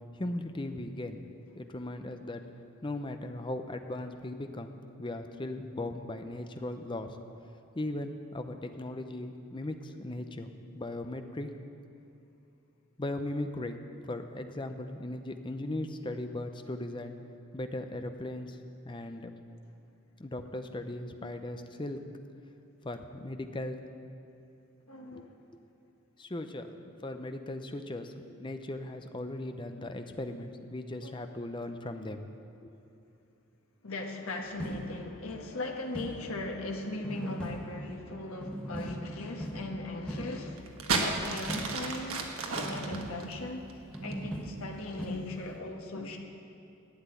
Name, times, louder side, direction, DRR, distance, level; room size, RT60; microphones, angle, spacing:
voice 1, 0.1-1.2 1.5-2.4 2.8-4.7 5.0-7.1 7.7-11.5 13.0-13.8 14.0-17.1 17.5-18.6 18.8-19.3 20.2-22.0 22.8-23.8 25.1-25.2 26.2-32.2 32.6-32.7, left 1 dB, 25° left, 7 dB, 0.6 m, -38 dB
voice 2, 24.9-25.3 31.0-31.1 33.8-42.3 42.5-43.7 44.0-46.2, left 2 dB, 85° left, 2 dB, 1.3 m, -39 dB
sound 1, 34.5-35.3 35.9-36.6 37.0-38.1 38.4-40.7 41.5-42.2 42.6-43.6 43.9-45.1, equal, 5° left, 1.2 m, -40 dB
sound 2, 40.6-44.3 45.1-45.4, right 4 dB, 85° right, 1.4 m, -32 dB
12.0 x 8.0 x 9.2 m, 2.6 s
head